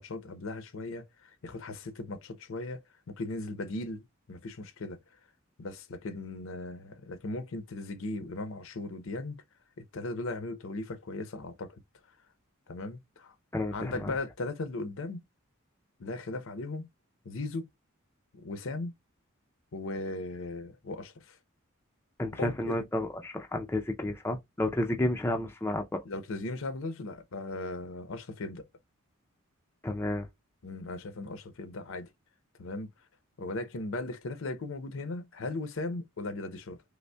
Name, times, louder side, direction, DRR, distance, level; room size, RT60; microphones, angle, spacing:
voice 1, 0.0-5.0 5.6-9.4 9.8-11.8 12.7-13.3 13.7-15.2 16.0-16.9 17.2-17.7 18.3-18.9 19.7-21.4 22.4-22.8 26.0-28.7 30.6-32.1 32.6-32.9 33.4-36.8, left 2 dB, 65° left, 0.6 m, -37 dB
voice 2, 13.5-14.1 22.2-26.0 29.8-30.3, left 1 dB, 10° left, 0.4 m, -31 dB
5.1 x 2.1 x 2.2 m
head